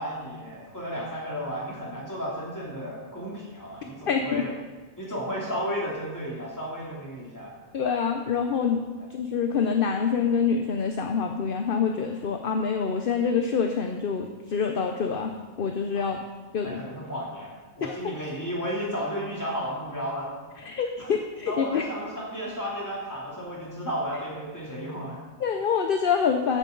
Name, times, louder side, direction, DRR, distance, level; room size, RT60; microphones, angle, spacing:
voice 1, 0.0-4.5 5.0-7.5 16.0-16.1 16.6-20.3 21.0-21.1 21.5-25.2, equal, 15° left, -5 dB, 3.0 m, -33 dB
voice 2, 4.1-4.4 7.7-8.8 9.1-16.2 16.5-16.8 17.8-18.2 20.6-21.8 25.4-26.6, left 6 dB, 50° left, 5 dB, 0.8 m, -26 dB
14.0 x 8.9 x 3.9 m, 1.3 s
omnidirectional pair, 1.4 m